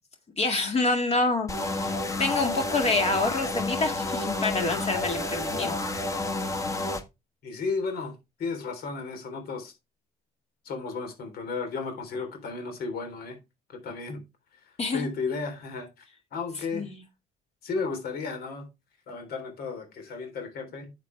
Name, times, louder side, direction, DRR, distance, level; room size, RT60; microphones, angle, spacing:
voice 1, 0.4-1.9 2.2-5.7 14.8-15.1 16.7-17.0, left 3 dB, 40° left, 2.1 m, -27 dB
sound 1, 1.5-7.0, left 2 dB, 20° left, 1.5 m, -30 dB
voice 2, 7.4-9.7 10.6-13.4 13.8-14.2 14.9-16.0 16.3-16.9 17.6-18.7 19.1-20.9, left 4 dB, 65° left, 3.5 m, -34 dB
9.5 x 7.4 x 3.3 m
cardioid pair, 110°, 17 cm